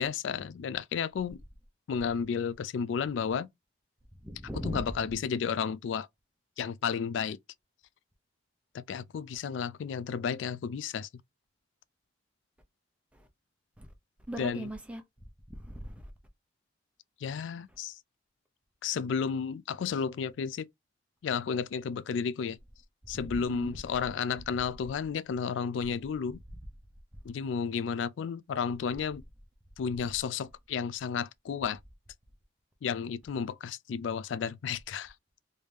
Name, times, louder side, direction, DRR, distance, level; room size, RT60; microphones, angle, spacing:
voice 1, 0.0-1.4 1.9-3.5 4.5-6.1 6.6-7.4 8.7-11.1 14.4-14.7 17.2-18.0 18.8-20.7 21.2-22.6 23.1-26.4 27.2-29.2 29.8-31.8 32.8-35.1, left 6 dB, 85° left, 0.3 m, -32 dB
voice 2, 4.2-5.2 13.1-13.3 13.8-13.9 14.3-15.0 15.6-15.9 23.2-23.8, equal, 5° right, 0.7 m, -39 dB
3.2 x 2.7 x 3.4 m
head